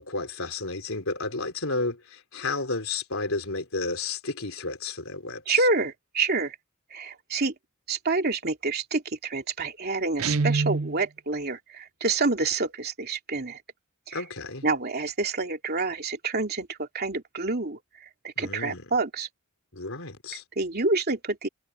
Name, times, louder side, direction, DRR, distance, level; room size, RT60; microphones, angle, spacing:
voice 1, 0.0-5.6 14.1-14.6 18.4-18.9 19.7-20.4, left 3 dB, 70° left, 4.3 m, -32 dB
voice 2, 5.5-6.5 6.9-7.5 7.9-13.6 14.1-14.2 14.6-19.3 20.6-21.5, right 3 dB, 50° right, 2.9 m, -28 dB
Guitar, 10.2-11.0, right 3 dB, 80° right, 0.7 m, -25 dB
head